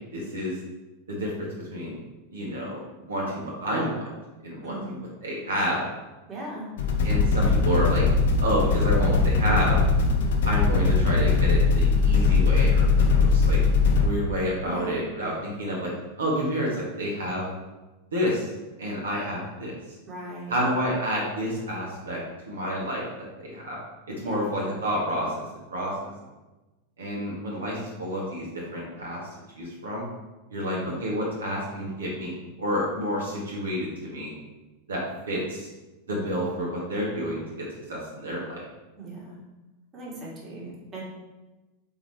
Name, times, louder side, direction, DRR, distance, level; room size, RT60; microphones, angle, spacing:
voice 1, 0.1-0.5 1.1-2.0 2.3-2.8 3.1-4.0 4.4-5.8 7.0-8.0 8.4-9.8 10.5-13.6 14.0-15.9 16.2-17.5 18.1-18.5 18.8-19.7 20.5-22.2 22.4-23.8 24.2-25.4 25.7-26.1 27.0-28.5 28.7-29.2 29.5-30.0 30.5-34.3 34.9-35.7 36.1-38.7, equal, 70° right, -4 dB, 1.6 m, -29 dB
voice 2, 4.6-5.1 6.3-6.7 14.6-15.0 20.1-20.6 24.2-24.4 30.6-31.0 39.0-39.4 39.9-41.0, right 2 dB, 25° right, -5 dB, 2.0 m, -38 dB
sound 1, 6.8-14.1, left 4 dB, 60° left, 0.8 m, -20 dB
5.6 x 3.9 x 4.3 m, 1.1 s
figure-of-eight pair, 90°, 0 cm